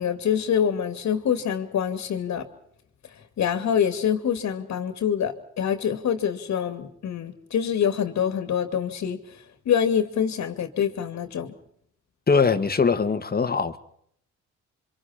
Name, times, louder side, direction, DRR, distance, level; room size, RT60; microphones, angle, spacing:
voice 1, 0.0-2.5 3.4-9.2 9.7-11.5, left 8 dB, 65° left, 9 dB, 2.4 m, -25 dB
voice 2, 12.3-13.8, left 5 dB, 30° left, 9 dB, 1.9 m, -21 dB
29.5 x 25.0 x 4.4 m, 0.67 s
cardioid pair, 90°, 30 cm